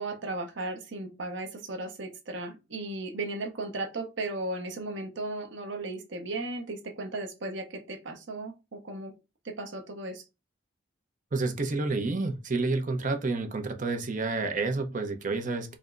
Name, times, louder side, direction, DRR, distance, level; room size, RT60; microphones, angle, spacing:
voice 1, 0.0-9.1 9.4-10.2, right 2 dB, 70° right, 0.9 m, -36 dB
voice 2, 11.3-15.8, right 3 dB, 45° right, 0.8 m, -29 dB
5.1 x 2.8 x 2.4 m
head